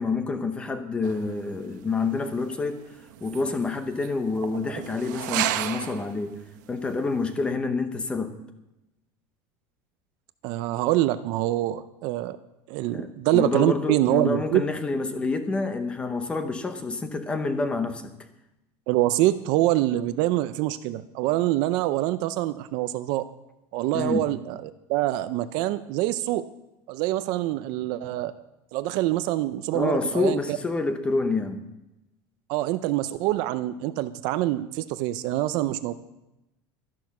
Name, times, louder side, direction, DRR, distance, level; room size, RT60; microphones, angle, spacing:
voice 1, 0.0-2.8 3.2-6.3 6.7-8.3 12.9-18.1 23.9-24.3 29.7-31.6, left 3 dB, 10° left, 9 dB, 0.8 m, -28 dB
sound 1, 1.0-6.3 6.7-6.8 7.2-7.4, right 13 dB, 80° right, 0.8 m, -33 dB
voice 2, 10.4-12.4 12.7-14.6 18.9-23.3 23.7-26.5 26.9-28.4 28.7-30.6 32.5-35.9, right 15 dB, 45° right, 13 dB, 0.4 m, -25 dB
12.5 x 10.5 x 5.9 m, 0.95 s
cardioid pair, 180°, 10 cm